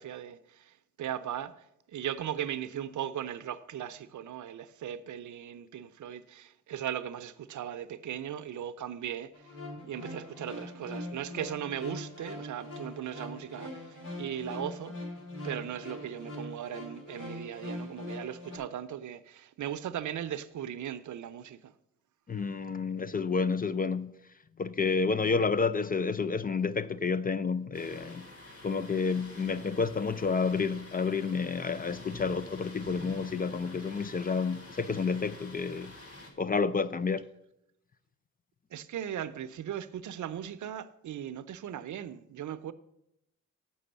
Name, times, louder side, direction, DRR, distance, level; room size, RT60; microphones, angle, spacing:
voice 1, 0.0-9.5 9.9-15.0 15.4-21.7 38.7-42.7, right 10 dB, 60° right, 0.6 m, -38 dB
sound 1, 9.3-18.6, left 1 dB, 70° left, 2.9 m, -42 dB
voice 2, 22.3-24.1 24.6-28.3 28.6-35.9 36.4-37.3, left 5 dB, 25° left, 0.4 m, -30 dB
Thunder, 27.7-36.3, left 2 dB, 45° left, 2.2 m, -48 dB
7.1 x 6.1 x 6.8 m
supercardioid pair, 55°, 34 cm